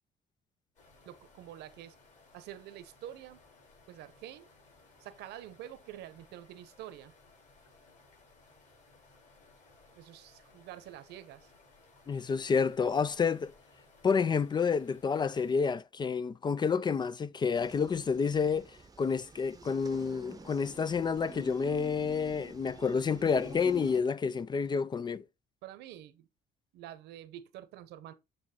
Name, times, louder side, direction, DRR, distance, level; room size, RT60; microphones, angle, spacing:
sound 1, 0.8-15.5, left 3 dB, 45° left, 4.8 m, -61 dB
voice 1, 1.0-2.0 2.3-3.4 3.9-4.5 5.0-7.1 10.0-11.5 25.6-26.3 26.7-28.1, right 12 dB, 85° right, 1.0 m, -47 dB
voice 2, 12.1-13.5 14.0-25.2, left 5 dB, 25° left, 0.4 m, -29 dB
sound 2, 17.5-24.0, right 4 dB, 20° right, 0.8 m, -48 dB
8.7 x 3.1 x 4.3 m
cardioid pair, 110°, 17 cm